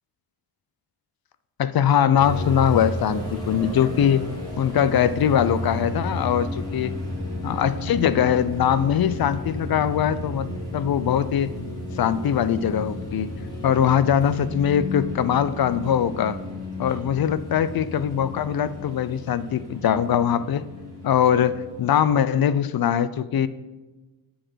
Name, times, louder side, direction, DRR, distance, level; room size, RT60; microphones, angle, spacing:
voice 1, 1.6-3.2 3.5-4.3 4.6-6.9 7.4-10.5 10.7-11.5 12.0-13.3 13.6-16.4 16.8-20.6 21.0-23.5, left 9 dB, 55° left, 15 dB, 0.5 m, -21 dB
sound 1, 2.2-22.1, left 1 dB, 10° left, 2.8 m, -33 dB
7.8 x 6.3 x 6.1 m, 1.2 s
wide cardioid pair, 150°, 43 cm